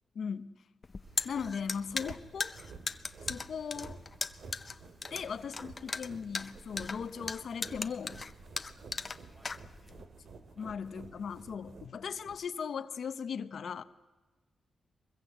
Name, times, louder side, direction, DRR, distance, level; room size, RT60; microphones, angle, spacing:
voice 1, 0.1-0.5 1.2-2.5 3.3-4.0 5.1-8.2 10.6-13.8, left 6 dB, 70° left, 11 dB, 0.8 m, -38 dB
sound 1, 0.8-10.0, left 4 dB, 35° left, 0.8 m, -38 dB
sound 2, 1.0-12.4, right 4 dB, 70° right, 2.5 m, -51 dB
voice 2, 5.0-6.2 9.2-9.6 9.8-11.3, right 1 dB, 30° right, 2 dB, 6.6 m, -64 dB
23.0 x 21.5 x 8.0 m, 1.2 s
cardioid pair, 100°, 0 cm